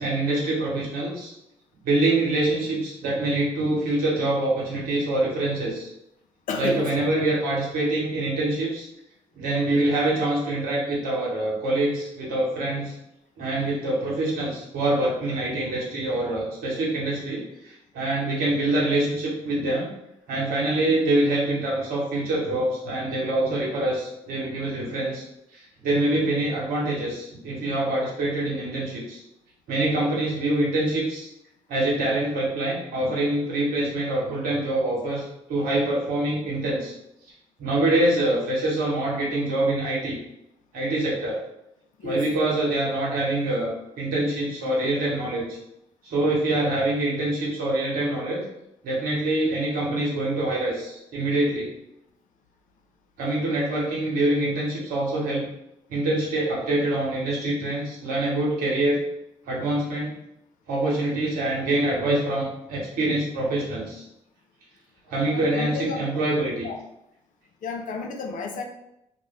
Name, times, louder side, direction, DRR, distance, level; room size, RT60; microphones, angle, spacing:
voice 1, 0.0-1.3 1.8-5.9 6.6-8.9 9.3-12.9 13.4-19.9 20.3-25.2 25.5-29.2 29.7-31.3 31.7-36.9 37.6-40.2 40.7-41.4 42.0-45.6 46.0-48.4 48.8-51.7 53.2-55.5 55.9-59.0 59.5-60.1 60.7-64.0 65.0-66.7, right 1 dB, 70° right, -5 dB, 1.1 m, -25 dB
voice 2, 6.5-6.9 42.0-42.3 53.7-53.8 65.3-66.0 66.6-66.8 67.6-68.6, left 4 dB, 55° left, 4 dB, 0.5 m, -31 dB
2.5 x 2.1 x 3.2 m, 0.83 s
hypercardioid pair, 45°, 16 cm